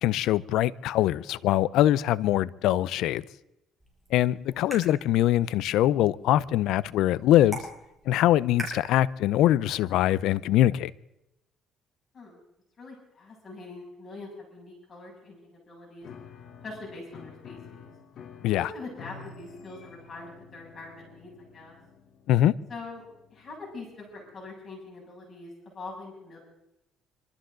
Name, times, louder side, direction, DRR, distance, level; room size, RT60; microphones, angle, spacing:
voice 1, 0.0-3.2 4.1-7.6 8.1-10.9 18.4-18.7 22.3-22.5, left 13 dB, 80° left, 0.5 m, -23 dB
sound 1, 3.8-9.8, right 1 dB, 10° right, 5.9 m, -44 dB
voice 2, 4.5-4.9 12.1-12.4 12.8-16.1 16.6-17.9 18.5-21.8 22.7-23.0 23.3-26.4, left 3 dB, 35° left, 7.3 m, -43 dB
Piano, 16.0-24.5, left 6 dB, 60° left, 1.4 m, -50 dB
26.0 x 13.5 x 3.9 m
cardioid pair, 100°, 0 cm